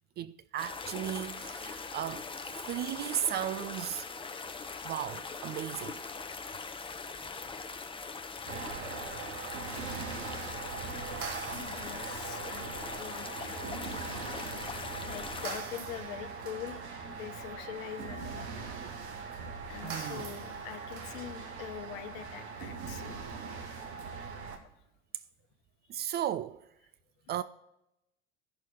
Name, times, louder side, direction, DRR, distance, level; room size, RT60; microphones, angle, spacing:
voice 1, 0.2-2.2 2.7-4.1 4.8-6.0 19.8-20.3 24.2-24.3 25.9-26.6 27.3-27.4, right 11 dB, 30° right, 0.4 m, -35 dB
sound 1, 0.6-15.6, left 4 dB, 15° left, 0.9 m, -41 dB
sound 2, 8.5-24.6, right 5 dB, 70° right, 1.4 m, -41 dB
voice 2, 11.5-13.9 15.0-18.5 19.6-23.2 25.9-26.0, left 10 dB, 55° left, 1.1 m, -44 dB
14.5 x 6.3 x 4.2 m
figure-of-eight pair, 75°, 34 cm